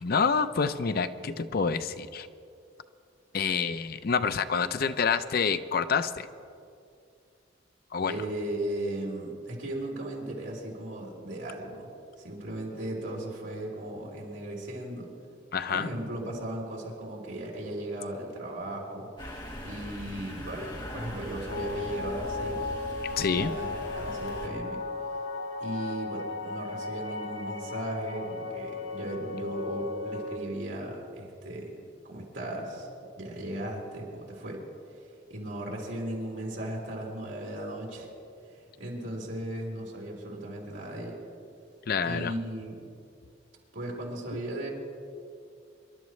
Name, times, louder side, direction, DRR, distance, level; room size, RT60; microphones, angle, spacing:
voice 1, 0.0-2.3 3.3-6.3 7.9-8.1 15.5-15.9 23.2-23.5 41.9-42.3, left 5 dB, 50° left, 11 dB, 0.5 m, -27 dB
voice 2, 8.1-11.9 12.2-15.1 15.6-19.1 19.6-22.7 23.3-24.8 25.6-31.7 32.1-32.9 33.2-34.6 34.9-38.1 38.4-41.2 42.0-42.9 43.7-44.7, right 1 dB, 75° right, -3 dB, 3.5 m, -36 dB
sound 1, 19.2-24.5, equal, 25° left, 1.9 m, -41 dB
sound 2, 21.5-30.4, left 3 dB, 70° left, 1.2 m, -36 dB
25.5 x 11.5 x 3.2 m, 2.4 s
head